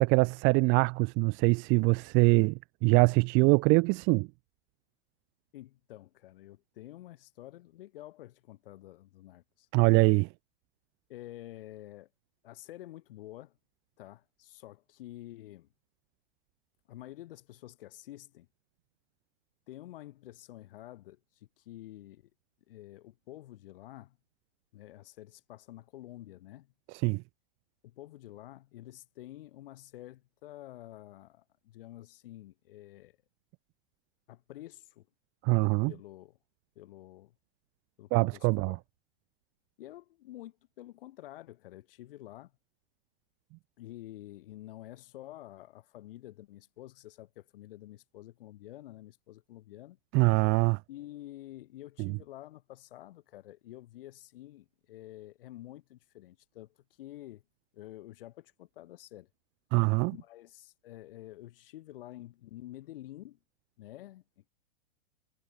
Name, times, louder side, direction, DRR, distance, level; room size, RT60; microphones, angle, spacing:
voice 1, 0.0-4.3 9.7-10.3 26.9-27.2 35.4-35.9 38.1-38.8 50.1-50.8 52.0-52.2 59.7-60.1, right 29 dB, 40° right, 1.2 m, -24 dB
voice 2, 5.5-9.7 11.1-12.1 12.4-13.6 14.0-15.7 16.9-18.5 19.7-22.3 22.7-24.2 24.7-26.7 27.8-33.2 34.3-35.1 35.9-36.4 36.8-37.3 38.0-38.8 39.8-42.5 43.8-50.0 50.9-57.4 57.7-59.3 60.1-63.4 63.8-64.5, left 15 dB, 65° left, 6.0 m, -49 dB
hypercardioid pair, 120°, 30 cm